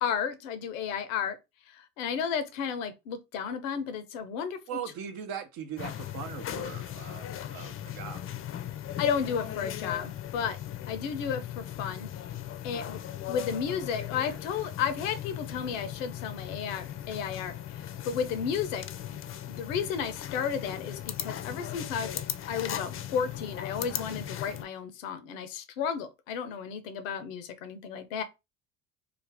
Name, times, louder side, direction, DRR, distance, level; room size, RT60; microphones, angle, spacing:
voice 1, 0.0-1.4 1.7-4.6 9.0-10.6 10.9-12.1 12.6-13.0 13.3-18.8 19.1-19.2 19.5-22.1 22.5-28.2, left 7 dB, 90° left, 0.6 m, -33 dB
voice 2, 4.7-8.2, right 8 dB, 65° right, 0.7 m, -40 dB
sound 1, 5.8-24.6, left 11 dB, 35° left, 0.4 m, -38 dB
2.5 x 2.3 x 3.2 m
hypercardioid pair, 65°, 38 cm